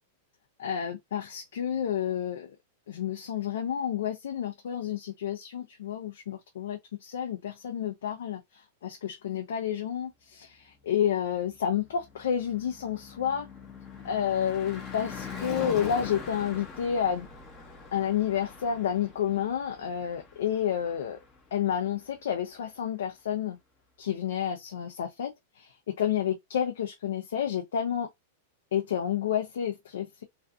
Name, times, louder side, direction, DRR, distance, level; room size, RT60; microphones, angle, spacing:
voice 1, 0.6-2.6 2.9-13.5 14.0-17.3 17.9-21.2 21.5-23.6 24.0-28.1 28.7-30.2, left 9 dB, 85° left, 0.5 m, -30 dB
Car passing by / Truck / Engine, 11.5-21.7, left 5 dB, 15° left, 0.6 m, -43 dB
2.5 x 2.3 x 2.4 m
supercardioid pair, 170°, 0 cm